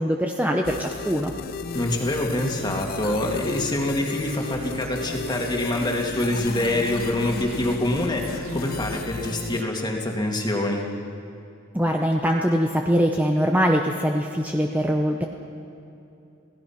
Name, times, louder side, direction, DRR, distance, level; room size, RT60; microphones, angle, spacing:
voice 1, 0.0-1.3 11.7-15.2, equal, 10° right, 1 dB, 0.9 m, -22 dB
sound 1, 0.6-9.6, left 5 dB, 45° left, 0.5 m, -34 dB
voice 2, 1.7-10.9, left 1 dB, 20° left, 0 dB, 2.3 m, -25 dB
sound 2, 2.3-10.3 10.6-10.7, right 3 dB, 85° right, 1.6 m, -42 dB
29.0 x 17.0 x 5.9 m, 2.8 s
head